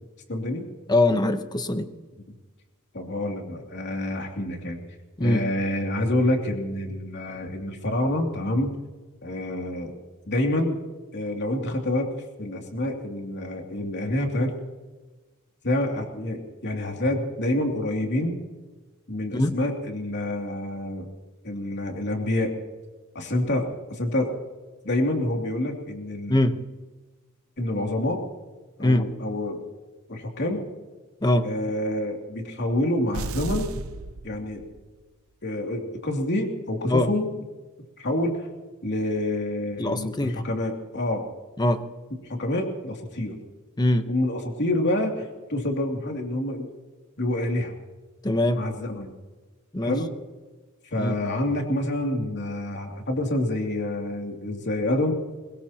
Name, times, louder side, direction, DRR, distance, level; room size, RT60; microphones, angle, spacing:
voice 1, 0.3-0.6 2.9-4.8 5.2-8.7 9.2-9.9 10.3-10.8 11.1-12.1 12.4-14.5 15.6-18.4 19.1-21.1 21.4-22.6 23.1-24.3 24.8-26.4 27.6-28.2 28.8-29.6 30.1-30.6 31.4-33.7 34.2-34.6 35.4-37.3 38.0-38.5 38.8-41.3 42.3-43.4 44.1-46.7 47.2-47.7 48.5-49.1 49.8-50.1 50.9-55.1, left 1 dB, 55° left, 2 dB, 2.8 m, -27 dB
voice 2, 0.9-1.9 5.2-5.4 19.3-19.5 26.3-26.5 28.8-29.0 31.2-31.5 36.9-37.1 39.8-40.4 41.6-41.8 43.8-44.1 48.2-48.6 49.7-50.0 51.0-51.1, left 1 dB, 20° left, 9 dB, 1.0 m, -22 dB
sound 1, 33.1-35.0, right 2 dB, 70° right, 0.8 m, -34 dB
22.0 x 20.5 x 3.0 m, 1.2 s
head